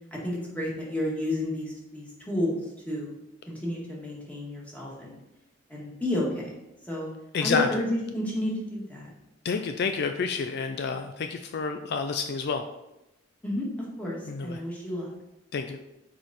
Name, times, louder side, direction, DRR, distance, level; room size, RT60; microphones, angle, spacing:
voice 1, 0.1-2.6 2.8-3.1 3.5-5.2 5.7-6.5 6.9-7.1 7.4-9.1 13.4-13.7 14.0-15.1, left 1 dB, 10° left, -4 dB, 1.7 m, -31 dB
voice 2, 7.3-7.8 9.4-12.6 14.3-14.6 15.5-15.8, left 5 dB, 55° left, 7 dB, 0.4 m, -29 dB
6.1 x 4.8 x 4.1 m, 0.91 s
head